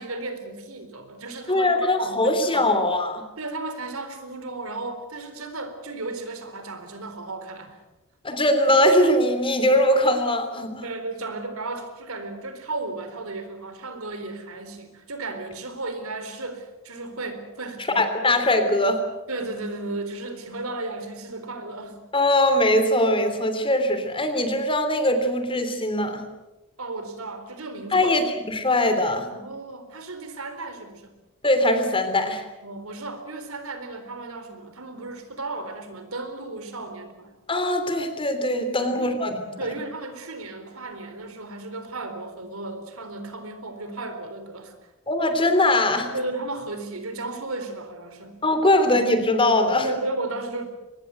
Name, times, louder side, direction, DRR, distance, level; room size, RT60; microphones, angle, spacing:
voice 1, 0.0-2.7 3.4-7.8 10.8-18.4 19.3-22.0 26.8-28.2 29.3-31.1 32.6-37.4 38.8-39.2 39.6-44.7 46.1-48.4 48.9-49.0 49.8-50.6, right 2 dB, 90° right, 8 dB, 4.0 m, -34 dB
voice 2, 1.5-3.2 8.2-10.8 17.9-19.0 22.1-26.2 27.9-29.3 31.4-32.4 37.5-39.4 45.1-46.1 48.4-49.9, left 1 dB, 25° left, 8 dB, 3.1 m, -21 dB
23.5 x 20.5 x 8.1 m, 1.0 s
head